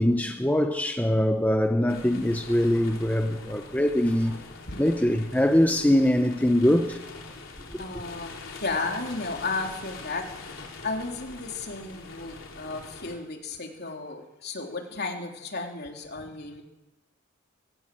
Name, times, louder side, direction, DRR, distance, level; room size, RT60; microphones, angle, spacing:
voice 1, 0.0-4.4 4.8-7.0 7.7-7.8, left 1 dB, 10° left, 1.0 m, -23 dB
sound 1, 1.9-13.2, left 3 dB, 70° left, 4.3 m, -43 dB
voice 2, 7.8-16.6, left 3 dB, 50° left, 3.5 m, -34 dB
23.5 x 18.5 x 7.8 m
head